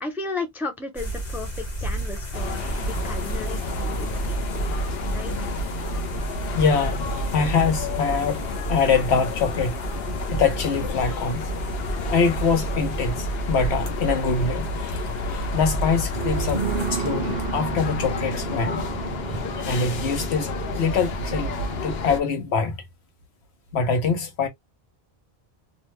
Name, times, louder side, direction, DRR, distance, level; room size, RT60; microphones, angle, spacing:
voice 1, 0.0-4.3 5.1-5.5, left 3 dB, ahead, 0.4 m, -34 dB
sound 1, 1.0-16.9, right 2 dB, 45° left, 1.0 m, -33 dB
sound 2, 2.3-22.2, left 2 dB, 70° left, 0.9 m, -30 dB
voice 2, 6.5-7.1 7.3-8.4 8.7-9.8 10.3-11.5 12.1-18.9 19.3-22.8 23.7-24.5, left 5 dB, 85° left, 1.1 m, -24 dB
sound 3, 16.1-21.9, right 7 dB, 50° right, 0.6 m, -32 dB
2.8 x 2.1 x 3.0 m
omnidirectional pair, 1.1 m